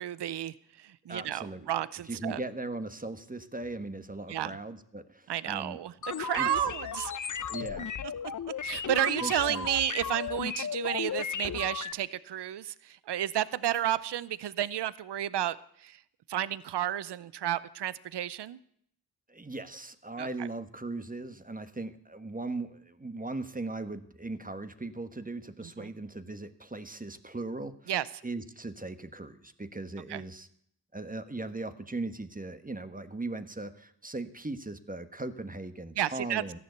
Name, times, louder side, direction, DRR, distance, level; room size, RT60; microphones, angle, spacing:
voice 1, 0.0-2.4 4.3-4.6 5.3-5.9 6.2-7.1 8.6-15.6 15.8-16.0 16.3-18.6 20.2-20.3 25.8-25.9 27.9-28.1 30.1-30.2 36.0-36.4, right 11 dB, 90° right, 18 dB, 0.7 m, -31 dB
voice 2, 1.1-1.7 2.0-5.8 6.2-6.6 7.5-7.9 9.2-9.7 19.3-27.9 28.2-30.5 30.9-36.6, right 2 dB, 20° right, 10 dB, 1.3 m, -38 dB
sound 1, 6.0-11.9, left 7 dB, 50° left, 0.8 m, -35 dB
14.0 x 11.0 x 8.1 m, 0.68 s
cardioid pair, 50°, 40 cm